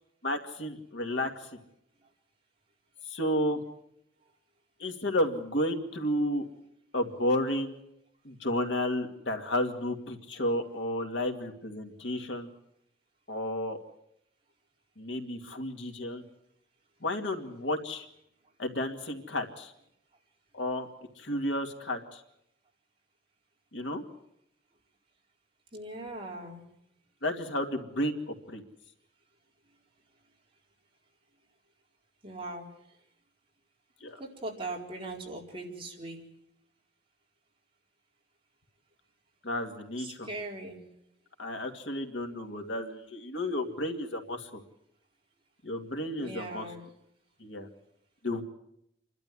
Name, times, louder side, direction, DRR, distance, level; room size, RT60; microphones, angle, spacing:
voice 1, 0.2-1.5 3.1-3.6 4.8-6.5 6.9-7.7 8.2-12.5 13.3-13.8 15.0-16.2 17.0-18.1 18.6-19.7 20.5-20.9 21.2-22.2 23.7-24.0 27.2-28.6 34.0-34.2 39.4-40.3 41.4-44.6 45.6-46.7 47.4-47.7 48.2-48.4, left 1 dB, 85° left, 4 dB, 2.3 m, -32 dB
voice 2, 25.7-26.6 32.2-32.7 34.2-36.2 40.0-40.8 46.1-46.8, right 2 dB, 30° right, -1 dB, 4.2 m, -40 dB
28.5 x 12.5 x 9.9 m, 0.80 s
head